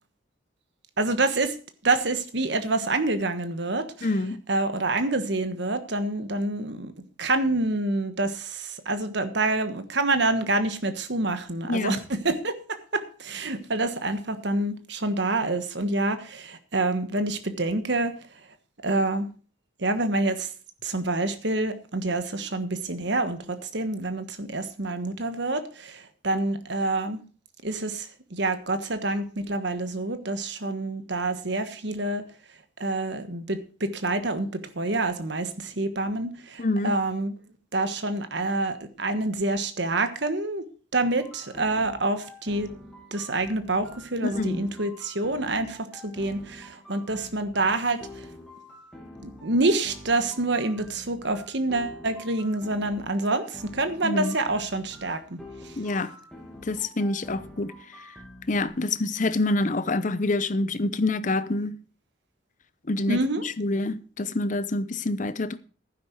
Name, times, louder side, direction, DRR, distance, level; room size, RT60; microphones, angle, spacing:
voice 1, 1.0-1.5 1.8-4.1 4.5-6.9 7.2-18.1 18.8-19.3 19.8-20.5 20.8-27.2 27.6-32.2 32.8-37.3 37.7-40.6 40.9-42.7 43.1-48.0 49.2-55.4 63.1-63.4, right 2 dB, 60° right, 1.3 m, -27 dB
voice 2, 4.0-4.4 11.7-12.0 36.6-36.9 44.2-44.6 54.0-54.4 55.8-56.1 56.7-57.7 58.5-61.8 62.9-65.6, left 2 dB, 40° left, 0.7 m, -26 dB
sound 1, 41.2-58.7, left 1 dB, 5° left, 2.6 m, -46 dB
12.0 x 10.0 x 4.6 m
head